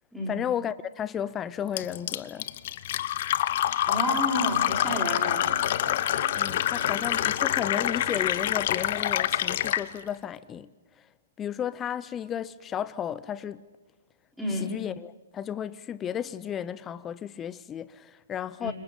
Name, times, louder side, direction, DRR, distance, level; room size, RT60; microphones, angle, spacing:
voice 1, 0.3-2.5 6.3-10.7 11.4-13.6 14.5-18.7, left 9 dB, 20° left, 0.7 m, -33 dB
Fill (with liquid), 1.8-9.9, left 12 dB, 45° left, 0.8 m, -26 dB
voice 2, 3.8-5.6 14.4-14.7 18.6-18.7, equal, ahead, 5.0 m, -30 dB
sound 1, 4.5-8.5, right 3 dB, 20° right, 2.9 m, -47 dB
29.0 x 26.0 x 5.5 m
figure-of-eight pair, 120°, 0 cm